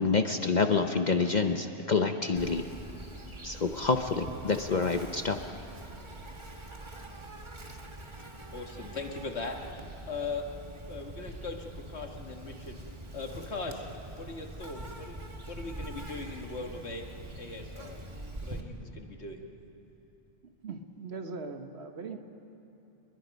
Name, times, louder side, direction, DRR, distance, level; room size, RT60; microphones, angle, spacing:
voice 1, 0.0-2.6 3.4-5.4, left 4 dB, 45° left, 6 dB, 0.8 m, -27 dB
Insect, 2.4-18.6, right 1 dB, 25° right, 1.4 m, -44 dB
voice 2, 8.5-9.6 10.1-10.5 10.9-12.8 13.1-17.1 17.4-18.0 18.4-19.4, left 3 dB, 70° left, 3 dB, 1.9 m, -39 dB
voice 3, 20.6-22.2, right 4 dB, 65° right, 6 dB, 1.5 m, -40 dB
29.5 x 21.5 x 5.3 m, 2.9 s
omnidirectional pair, 1.2 m